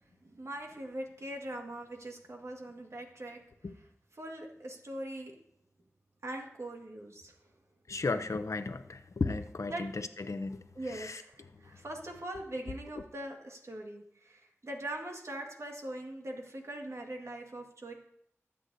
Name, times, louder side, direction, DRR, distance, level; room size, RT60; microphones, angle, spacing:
voice 1, 0.2-3.4 4.2-5.4 6.2-7.3 9.7-9.9 10.7-17.9, right 1 dB, 70° right, 1 dB, 1.7 m, -41 dB
voice 2, 7.9-11.5, left 3 dB, 85° left, 10 dB, 0.6 m, -35 dB
20.5 x 7.9 x 2.7 m, 0.72 s
wide cardioid pair, 60°, 5 cm